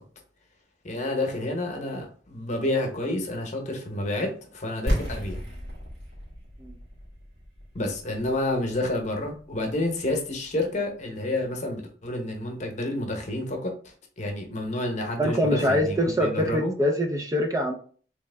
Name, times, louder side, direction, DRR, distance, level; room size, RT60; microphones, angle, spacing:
voice 1, 0.8-5.4 7.7-13.7 14.2-16.7, left 1 dB, 40° left, 3 dB, 0.9 m, -29 dB
sound 1, 4.9-10.6, equal, 70° right, 1.9 m, -34 dB
voice 2, 15.2-17.7, equal, 20° right, 3 dB, 0.4 m, -24 dB
3.4 x 3.1 x 3.3 m, 0.43 s
head